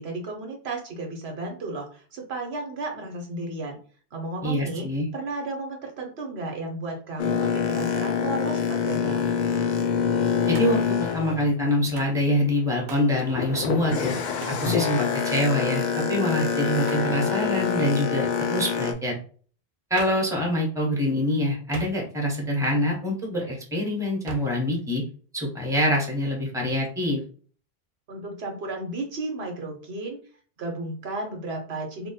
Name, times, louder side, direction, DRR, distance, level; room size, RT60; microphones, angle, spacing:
voice 1, 0.0-3.8 4.1-4.9 5.1-9.3 28.1-30.2 30.6-32.1, right 2 dB, 85° right, 2 dB, 1.1 m, -33 dB
voice 2, 4.4-5.1 10.5-14.1 14.6-19.2 19.9-25.0 25.3-27.2, left 1 dB, 5° right, -1 dB, 1.0 m, -25 dB
Boat Water vehicle, 7.2-12.2 12.6-18.9, left 6 dB, 55° left, 0.6 m, -26 dB
Hands, 10.5-11.0 12.0-12.2 12.9-13.2 14.4-14.7 16.8-17.2 20.0-20.3 21.7-22.3 24.3-24.6, right 5 dB, 60° right, 0.6 m, -41 dB
2.9 x 2.2 x 4.1 m, 0.43 s
omnidirectional pair, 1.0 m